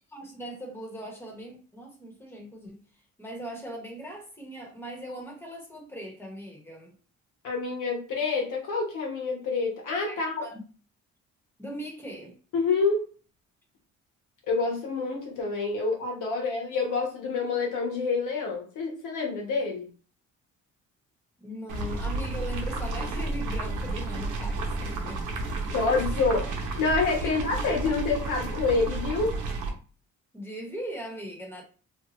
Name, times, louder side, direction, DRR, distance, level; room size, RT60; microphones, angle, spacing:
voice 1, 0.1-2.8 3.2-6.9 10.1-10.6 11.6-12.3 21.4-25.4 25.7-25.9 27.2-27.4 30.3-31.6, right 1 dB, 10° left, 1.1 m, -39 dB
voice 2, 7.4-10.4 12.5-13.1 14.5-19.9 25.7-26.4 26.8-29.4, left 4 dB, 80° left, 1.2 m, -27 dB
sound 1, 21.7-29.7, right 2 dB, 85° right, 0.8 m, -31 dB
2.8 x 2.2 x 3.0 m
cardioid pair, 90°, 30 cm